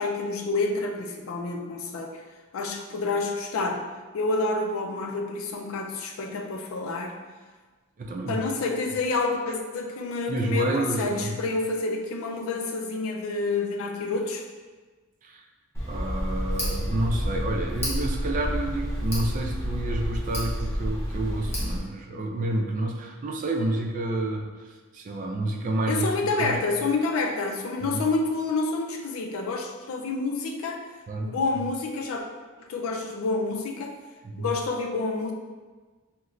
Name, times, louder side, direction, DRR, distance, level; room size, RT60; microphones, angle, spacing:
voice 1, 0.0-2.2 2.5-3.8 4.1-7.2 8.3-14.4 25.9-30.8 31.2-32.2 32.7-34.0 34.4-35.3, left 3 dB, 75° left, 3 dB, 0.4 m, -28 dB
voice 2, 8.0-8.5 10.3-11.4 15.2-15.4 15.9-26.6 27.8-28.0 31.1-31.4 34.2-34.5, right 1 dB, 40° right, 2 dB, 0.3 m, -29 dB
Tick, 15.7-21.8, equal, 10° left, 0.7 m, -29 dB
2.9 x 2.1 x 3.8 m, 1.3 s
head